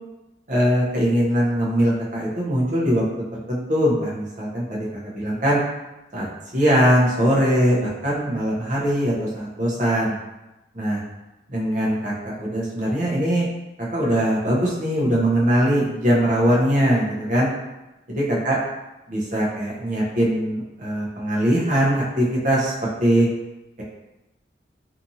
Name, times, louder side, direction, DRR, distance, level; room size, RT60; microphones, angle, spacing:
voice 1, 0.5-3.0 3.5-5.6 6.1-6.2 6.5-10.2 10.7-11.0 11.5-13.5 13.9-17.5 18.1-18.6 19.1-23.3, equal, 45° right, -5 dB, 0.7 m, -21 dB
2.7 x 2.5 x 2.6 m, 1.0 s
head